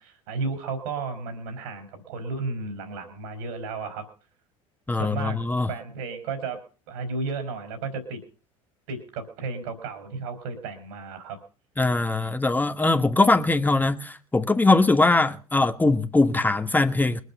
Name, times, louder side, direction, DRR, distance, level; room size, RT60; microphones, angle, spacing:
voice 1, 0.0-4.1 4.9-5.4 5.7-6.6 6.9-8.2 8.9-11.4, right 4 dB, 65° right, 3.8 m, -33 dB
voice 2, 4.9-5.7 11.8-17.2, left 3 dB, 10° left, 1.4 m, -21 dB
23.0 x 8.2 x 5.5 m
figure-of-eight pair, 75°, 17 cm